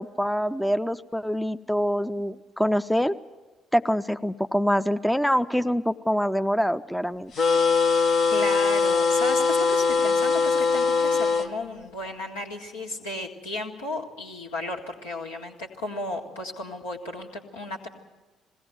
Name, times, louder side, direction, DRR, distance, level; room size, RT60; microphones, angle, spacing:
voice 1, 0.0-3.2 3.7-7.3, equal, 5° left, 10 dB, 0.5 m, -25 dB
sound 1, 7.3-11.5, left 4 dB, 55° left, 1.1 m, -21 dB
voice 2, 8.3-17.9, left 2 dB, 80° left, -1 dB, 1.8 m, -34 dB
21.0 x 17.0 x 7.9 m, 1.2 s
figure-of-eight pair, 45°, 0 cm